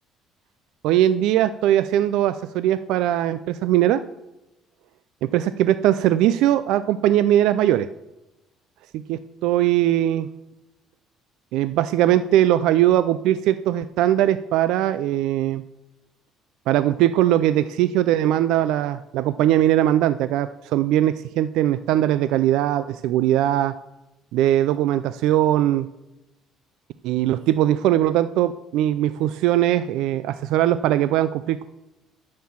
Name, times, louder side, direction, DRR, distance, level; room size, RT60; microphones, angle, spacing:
voice 1, 0.8-4.0 5.2-7.9 8.9-10.3 11.5-15.6 16.7-23.7 24.3-25.9 27.0-31.6, right 12 dB, 75° right, 13 dB, 0.4 m, -20 dB
9.5 x 6.6 x 7.1 m, 0.96 s
cardioid pair, 150°, 0 cm